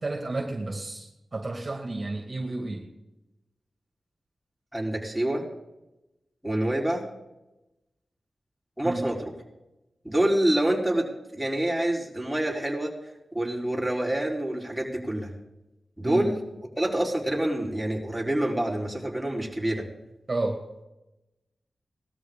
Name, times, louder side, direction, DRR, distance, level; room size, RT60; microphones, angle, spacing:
voice 1, 0.0-2.9 8.8-9.1 16.0-16.3 20.3-20.6, right 2 dB, 40° right, 3 dB, 2.2 m, -31 dB
voice 2, 4.7-5.4 6.4-7.1 8.8-9.3 10.0-11.1 11.3-12.9 13.3-15.3 16.0-16.4 16.8-19.9, right 1 dB, 5° right, -3 dB, 4.4 m, -26 dB
18.5 x 13.0 x 3.9 m, 0.96 s
cardioid pair, 45°, 0 cm